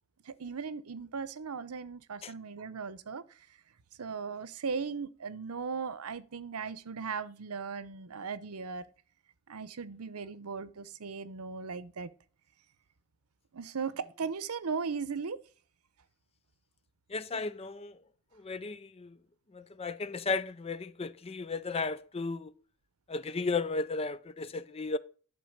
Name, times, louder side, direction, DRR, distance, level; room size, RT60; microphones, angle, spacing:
voice 1, 0.2-3.4 4.0-8.9 9.5-12.1 13.5-15.4, right 5 dB, 85° right, 0.7 m, -37 dB
voice 2, 17.1-18.0 18.3-19.2 19.5-22.5 23.1-25.0, left 3 dB, 25° left, 0.4 m, -35 dB
11.5 x 3.8 x 6.5 m
head